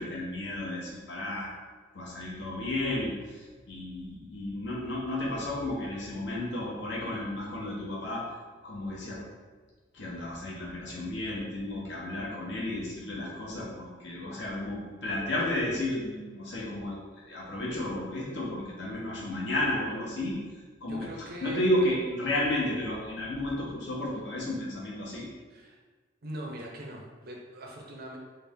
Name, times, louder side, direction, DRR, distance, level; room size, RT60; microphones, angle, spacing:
voice 1, 0.0-1.5 1.9-8.3 8.6-9.2 9.9-17.0 17.3-20.4 20.8-21.1 21.4-25.2, left 1 dB, 65° left, -4 dB, 0.9 m, -32 dB
voice 2, 20.9-21.6 25.5-25.8 26.2-28.2, right 1 dB, 50° right, 0 dB, 0.5 m, -41 dB
3.3 x 2.4 x 3.4 m, 1.4 s
head